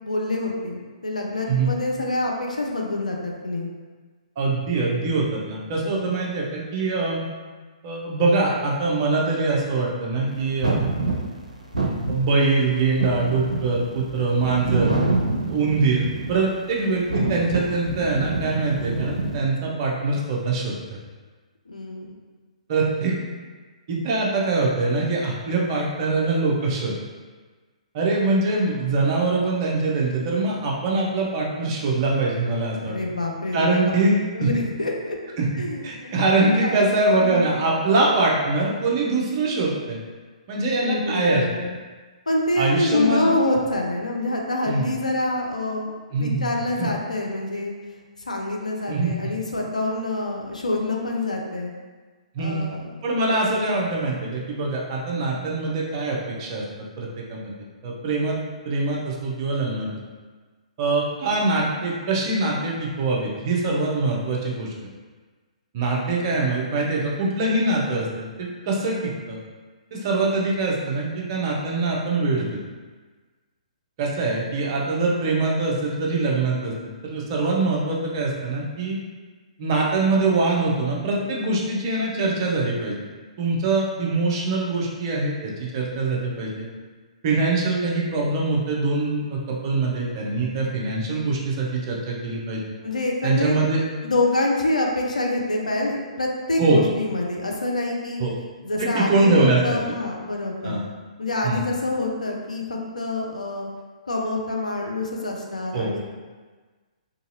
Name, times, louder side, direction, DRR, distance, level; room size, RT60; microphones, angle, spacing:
voice 1, 0.0-3.7 21.7-22.1 32.7-34.0 34.3-35.2 35.5-36.1 36.4-36.8 37.2-37.4 40.8-41.7 42.3-45.9 46.2-47.7 48.2-51.7 52.4-52.9 92.8-93.6 94.0-98.2 98.6-100.8 101.2-103.7 104.1-106.0, left 2 dB, 80° left, 0 dB, 0.5 m, -26 dB
voice 2, 4.4-7.2 7.8-10.7 11.8-15.0 15.5-21.0 22.7-23.1 23.9-26.9 27.9-33.0 33.5-34.5 35.4-35.5 35.8-40.0 40.5-41.7 42.6-43.3 44.7-44.9 46.1-46.5 46.8-46.9 48.9-49.1 52.3-52.6 53.0-56.6 57.0-57.5 57.8-58.4 58.6-59.9 60.8-64.7 65.7-69.4 69.9-72.5 74.0-76.7 77.0-79.0 79.6-82.9 83.4-86.7 87.2-92.6 93.2-93.8 96.6-96.8 98.2-98.3 98.8-99.8 100.6-100.8 101.4-101.6 105.7-105.9, right 3 dB, 40° right, -3 dB, 0.6 m, -23 dB
sound 1, 10.6-16.5 16.9-19.4, right 3 dB, 85° right, 0.5 m, -26 dB
2.8 x 2.7 x 2.6 m, 1.4 s
figure-of-eight pair, 125°, 4 cm